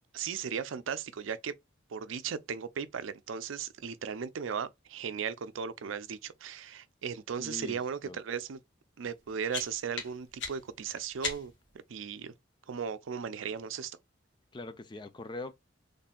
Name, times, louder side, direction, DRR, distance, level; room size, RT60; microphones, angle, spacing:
voice 1, 0.1-1.6 1.9-8.6 9.0-11.5 11.9-12.3 12.7-14.0, right 7 dB, 90° right, 0.5 m, -36 dB
voice 2, 7.4-8.2 14.5-15.5, left 2 dB, 25° left, 0.4 m, -42 dB
sound 1, 9.1-11.8, left 4 dB, 65° left, 1.5 m, -40 dB
4.2 x 3.2 x 2.3 m
head